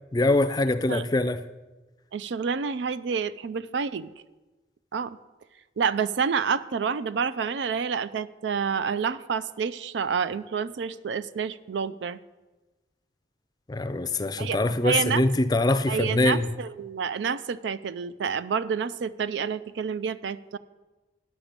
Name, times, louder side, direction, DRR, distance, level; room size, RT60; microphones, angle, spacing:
voice 1, 0.1-1.4 13.7-16.5, left 2 dB, 20° left, 0.4 m, -23 dB
voice 2, 2.1-4.1 4.9-5.2 5.8-12.2 14.4-14.6 14.8-15.2 15.9-20.6, right 6 dB, 90° right, 0.4 m, -28 dB
10.0 x 6.1 x 6.6 m
head